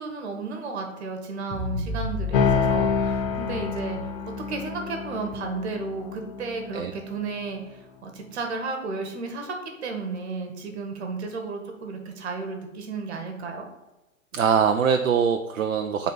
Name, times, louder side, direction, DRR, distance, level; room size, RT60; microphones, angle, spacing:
voice 1, 0.0-4.0 4.5-9.5 9.8-13.7, right 4 dB, 50° right, 4 dB, 1.7 m, -33 dB
sound 1, 1.5-4.6, left 2 dB, 25° left, 2.0 m, -33 dB
sound 2, 2.3-7.2, left 5 dB, 40° left, 0.9 m, -28 dB
voice 2, 14.3-16.1, right 7 dB, 70° right, 6 dB, 0.7 m, -22 dB
7.6 x 4.1 x 5.5 m, 1.1 s
figure-of-eight pair, 120°, 41 cm